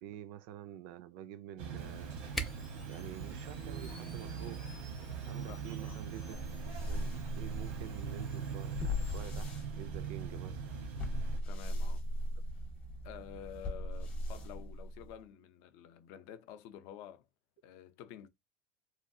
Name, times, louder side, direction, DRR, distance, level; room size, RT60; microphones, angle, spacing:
voice 1, 0.0-2.4 2.9-4.7 5.0-10.6, right 11 dB, 65° right, 0.4 m, -48 dB
sound 1, 1.6-11.4, right 6 dB, 85° right, 0.9 m, -42 dB
Camera, 1.8-9.2, right 1 dB, 5° left, 0.5 m, -48 dB
voice 2, 5.5-6.0 11.5-12.0 13.0-17.3 17.6-18.3, left 10 dB, 60° left, 0.5 m, -50 dB
sound 2, 6.3-15.2, left 1 dB, 30° left, 0.8 m, -39 dB
3.0 x 2.3 x 2.6 m
supercardioid pair, 145°, 5 cm